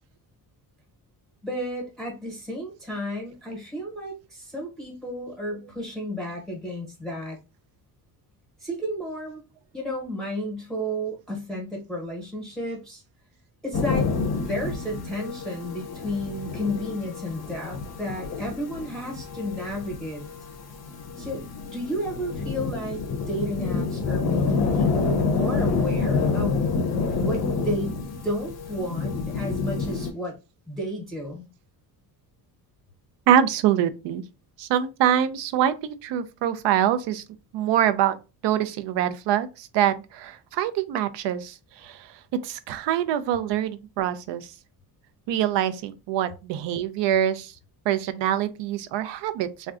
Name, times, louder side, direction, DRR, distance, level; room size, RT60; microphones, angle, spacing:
voice 1, 1.4-7.4 8.6-9.4 9.7-13.0 13.6-20.2 21.2-21.4 21.7-26.6 27.2-28.0 28.2-30.4 30.7-31.5, equal, ahead, 0.9 m, -32 dB
sound 1, 13.7-30.1, left 4 dB, 40° left, 0.6 m, -28 dB
voice 2, 33.3-34.2 34.6-37.2 37.5-38.2 38.4-44.5 45.3-47.5 47.9-49.7, right 10 dB, 75° right, 0.5 m, -24 dB
3.5 x 2.2 x 2.4 m
cardioid pair, 140°, 43 cm